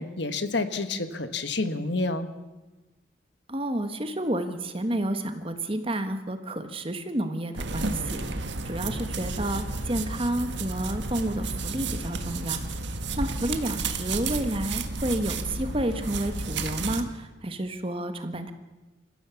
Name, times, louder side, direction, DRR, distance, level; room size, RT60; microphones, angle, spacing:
voice 1, 0.0-2.3, left 3 dB, 65° left, 10 dB, 1.4 m, -29 dB
voice 2, 3.5-12.6 13.2-18.5, right 1 dB, 30° right, 8 dB, 1.5 m, -30 dB
sound 1, 7.5-17.0, right 3 dB, 65° right, 1.7 m, -32 dB
27.5 x 15.5 x 7.2 m, 1.2 s
head